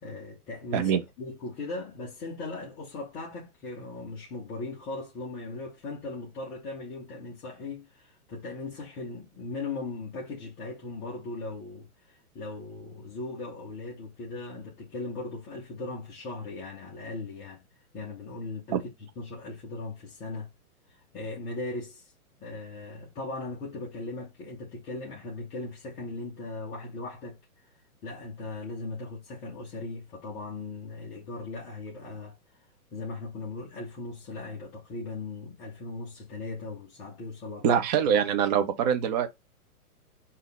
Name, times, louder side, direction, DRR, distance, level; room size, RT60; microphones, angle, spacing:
voice 1, 0.0-0.9 1.2-17.6 17.9-20.5 21.1-22.1 22.4-27.4 28.0-32.4 32.9-38.2, left 3 dB, 10° left, 0.5 m, -38 dB
voice 2, 0.7-1.0 18.7-18.8 37.6-39.3, right 8 dB, 30° right, 0.8 m, -24 dB
6.2 x 2.8 x 5.5 m
hypercardioid pair, 155°, 45 cm